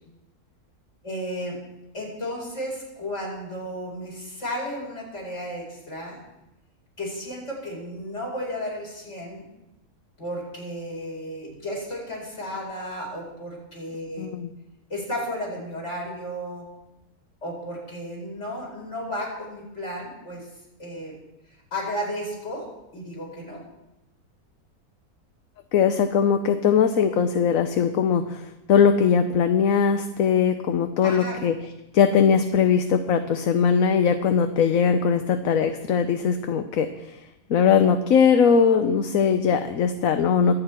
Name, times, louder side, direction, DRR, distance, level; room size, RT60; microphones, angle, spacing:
voice 1, 1.0-1.6 1.9-6.2 7.0-9.5 10.2-14.3 14.9-16.6 17.4-20.5 20.8-21.1 21.7-22.7 22.9-23.6 31.0-31.4, equal, 50° left, -2 dB, 5.1 m, -33 dB
voice 2, 14.2-14.5 25.7-31.5 31.9-36.9 37.5-40.6, left 6 dB, 65° left, 8 dB, 1.2 m, -20 dB
23.5 x 9.1 x 4.4 m, 0.93 s
omnidirectional pair, 1.6 m